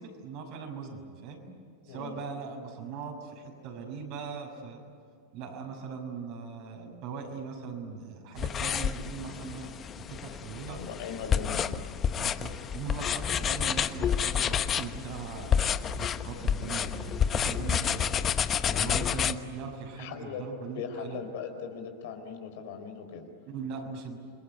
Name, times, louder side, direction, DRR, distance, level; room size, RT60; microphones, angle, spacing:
voice 1, 0.0-1.4 1.8-4.8 5.3-10.8 12.2-21.2 23.5-24.2, right 5 dB, 55° right, 3 dB, 6.4 m, -40 dB
voice 2, 1.9-2.2 10.7-11.7 18.5-19.0 19.9-20.5 20.7-23.3, left 7 dB, 65° left, 5 dB, 4.4 m, -39 dB
sound 1, 8.4-19.3, left 8 dB, 30° left, 1.1 m, -29 dB
29.0 x 21.5 x 9.4 m, 2.2 s
hypercardioid pair, 100°, 0 cm